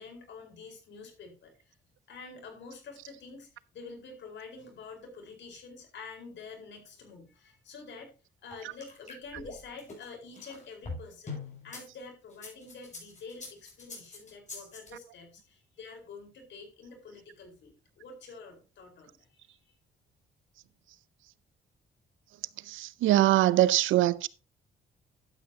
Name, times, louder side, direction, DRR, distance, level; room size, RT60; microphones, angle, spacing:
voice 1, 0.0-1.7 2.1-8.1 8.4-19.8, left 4 dB, 65° left, 4.6 m, -48 dB
sound 1, 8.5-11.8 12.3-14.9, left 3 dB, 35° left, 6.4 m, -43 dB
voice 2, 22.7-24.3, right 14 dB, 80° right, 0.5 m, -23 dB
12.0 x 8.6 x 2.9 m
cardioid pair, 90°, 20 cm